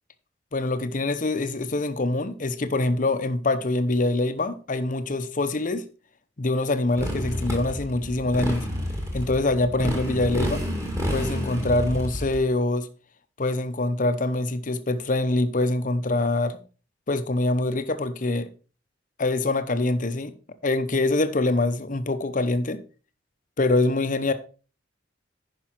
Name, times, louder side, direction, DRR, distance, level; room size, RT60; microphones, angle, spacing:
voice 1, 0.5-5.8 6.4-8.7 9.1-10.6 11.1-12.9 13.4-16.6 17.1-18.5 19.2-20.3 20.6-22.8 23.6-24.3, left 2 dB, 45° left, 0.8 m, -24 dB
Motorcycle, 7.0-12.4, equal, 15° right, 2.1 m, -29 dB
10.5 x 5.4 x 4.5 m
head